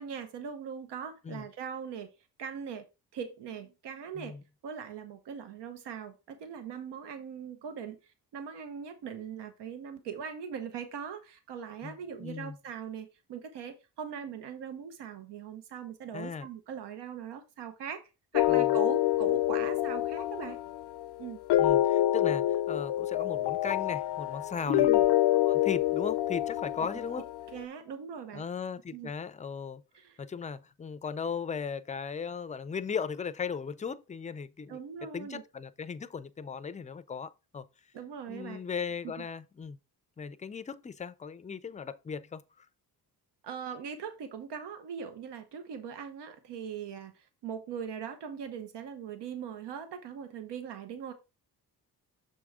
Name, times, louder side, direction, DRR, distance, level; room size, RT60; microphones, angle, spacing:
voice 1, 0.0-2.1 2.4-2.8 3.1-4.4 4.6-18.0 18.3-20.6 21.2-21.4 24.7-25.0 27.5-28.5 28.9-29.1 29.9-30.2 34.7-35.4 37.9-38.6 39.2-39.3 43.4-51.1, right 7 dB, 85° right, 1.0 m, -40 dB
voice 2, 11.8-12.6 16.1-16.5 18.5-18.6 21.6-24.9 25.4-27.2 28.3-29.8 30.2-34.8 35.1-37.7 38.3-39.8 40.2-42.7, left 6 dB, 20° left, 0.4 m, -37 dB
sound 1, 18.3-27.5, left 14 dB, 75° left, 0.5 m, -27 dB
6.8 x 4.9 x 3.6 m
cardioid pair, 110°, 40 cm